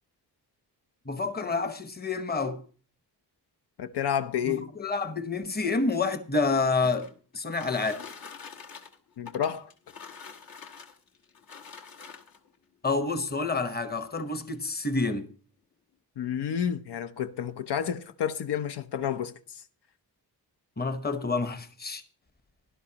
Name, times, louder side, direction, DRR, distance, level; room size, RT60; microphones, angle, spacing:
voice 1, 1.0-2.6 4.5-7.1 7.3-8.0 12.8-15.3 20.8-22.0, left 3 dB, 25° left, 1.0 m, -28 dB
voice 2, 3.8-4.7 9.2-9.7 16.2-19.6, left 9 dB, 80° left, 0.8 m, -30 dB
sound 1, 6.4-12.6 13.4-13.5 13.9-14.0 14.3-14.7, left 6 dB, 60° left, 1.3 m, -46 dB
17.0 x 11.5 x 2.9 m
wide cardioid pair, 125°, 40 cm